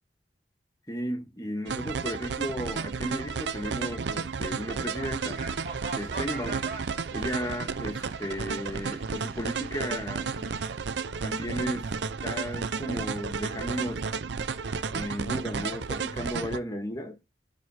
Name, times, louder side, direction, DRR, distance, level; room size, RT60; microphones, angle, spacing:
voice 1, 0.9-5.4 5.9-6.7 7.1-10.7 11.2-11.9 12.2-14.0 14.9-17.2, equal, 20° left, 1.6 m, -35 dB
sound 1, 1.7-16.6, right 5 dB, 80° right, 0.6 m, -32 dB
sound 2, 4.9-10.8, right 3 dB, 55° right, 2.9 m, -43 dB
11.0 x 4.2 x 4.2 m
head